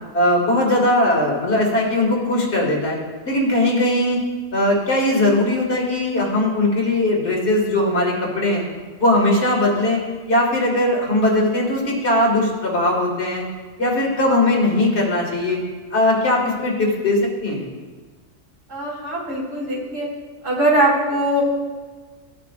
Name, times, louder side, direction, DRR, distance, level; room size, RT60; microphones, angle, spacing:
voice 1, 0.1-3.0 3.2-4.2 4.5-8.6 9.0-10.0 10.3-13.4 13.8-15.6 15.9-17.7, left 1 dB, 60° left, -3 dB, 2.4 m, -19 dB
voice 2, 18.7-20.1 20.4-21.4, right 1 dB, 70° right, -7 dB, 3.5 m, -21 dB
15.0 x 8.8 x 2.5 m, 1.4 s
omnidirectional pair, 1.3 m